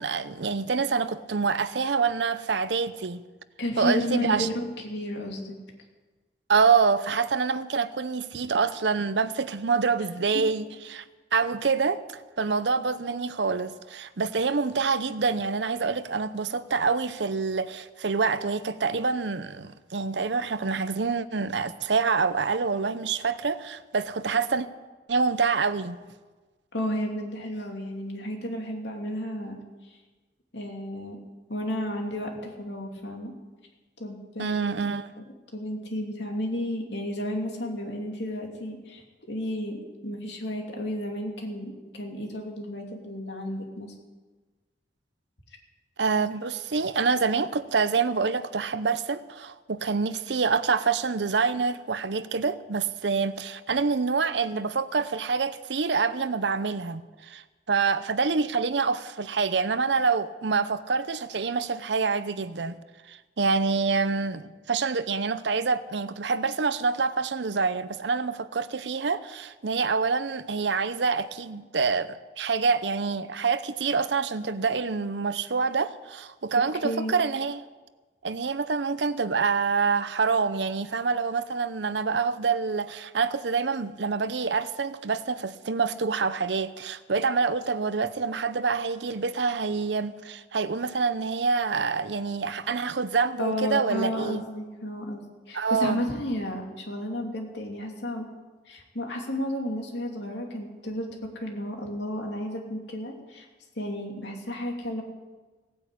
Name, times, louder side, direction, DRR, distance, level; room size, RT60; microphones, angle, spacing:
voice 1, 0.0-3.2 3.8-4.5 6.5-11.0 11.3-24.7 25.1-26.0 34.4-35.1 46.0-57.0 57.3-57.4 57.7-62.8 63.1-77.6 78.2-94.4 95.5-96.0, right 5 dB, 75° right, 0.7 m, -26 dB
voice 2, 3.6-5.5 10.3-10.4 26.7-29.6 30.5-31.2 31.5-33.3 34.0-34.7 35.5-43.9 76.8-77.1 93.4-95.2 95.5-98.3 98.7-103.5 103.8-105.0, left 1 dB, 75° left, 2.9 m, -32 dB
17.5 x 9.6 x 8.5 m
head